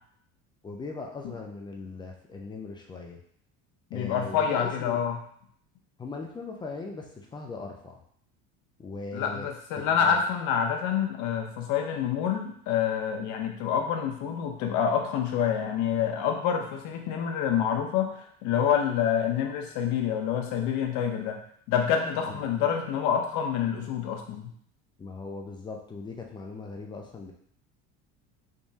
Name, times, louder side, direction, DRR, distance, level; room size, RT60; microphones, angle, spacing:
voice 1, 0.6-3.2 3.9-5.0 6.0-8.0 8.8-9.5 9.8-10.2 22.3-22.5 25.0-27.3, left 3 dB, 15° left, 1 dB, 0.3 m, -39 dB
voice 2, 3.9-5.2 9.1-21.4 21.7-24.5, left 8 dB, 65° left, 3 dB, 0.7 m, -27 dB
3.5 x 3.0 x 2.7 m, 0.63 s
cardioid pair, 145°, 32 cm